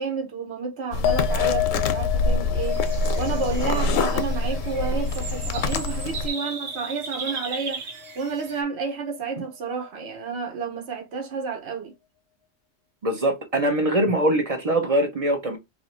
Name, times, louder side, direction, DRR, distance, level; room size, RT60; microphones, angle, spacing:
voice 1, 0.0-2.8 3.1-7.8 8.1-11.9, right 5 dB, 60° right, 1.2 m, -30 dB
sound 1, 0.9-6.3, left 3 dB, 85° left, 1.0 m, -25 dB
sound 2, 1.0-7.7 8.0-8.6, left 12 dB, 60° left, 0.7 m, -32 dB
sound 3, 2.6-8.6, right 4 dB, 75° right, 1.2 m, -37 dB
voice 2, 13.0-15.6, right 1 dB, 35° right, 0.8 m, -22 dB
2.9 x 2.6 x 4.3 m
omnidirectional pair, 1.3 m